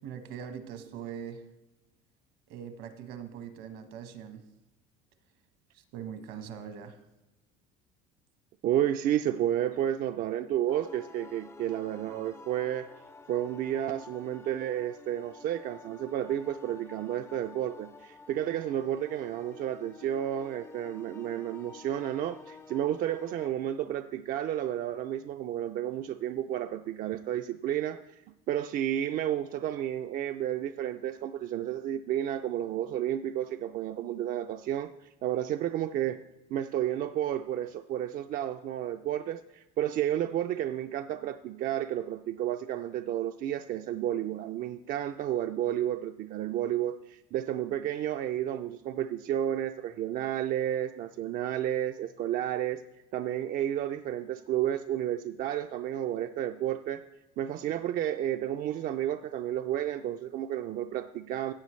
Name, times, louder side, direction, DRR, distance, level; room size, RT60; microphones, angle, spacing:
voice 1, 0.0-1.4 2.5-4.4 5.7-7.0, right 8 dB, 75° right, 8 dB, 1.2 m, -42 dB
voice 2, 8.6-12.9 13.3-28.2 28.5-36.2 36.5-52.8 53.1-57.0 57.4-61.5, right 11 dB, 50° right, 7 dB, 0.4 m, -31 dB
sound 1, 10.7-23.5, left 4 dB, 15° left, 0.4 m, -51 dB
16.0 x 7.4 x 3.1 m, 0.98 s
cardioid pair, 115°, 18 cm